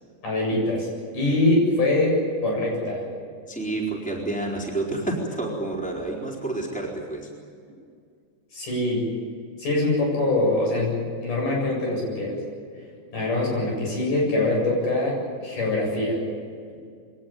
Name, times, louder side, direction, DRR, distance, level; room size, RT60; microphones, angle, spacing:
voice 1, 0.2-0.9 1.1-3.0 8.5-9.1 9.6-12.4 13.1-16.2, left 2 dB, 75° left, -1 dB, 9.4 m, -23 dB
voice 2, 3.5-7.3, right 2 dB, ahead, -2 dB, 3.9 m, -29 dB
24.5 x 18.0 x 9.2 m, 2.2 s
omnidirectional pair, 3.7 m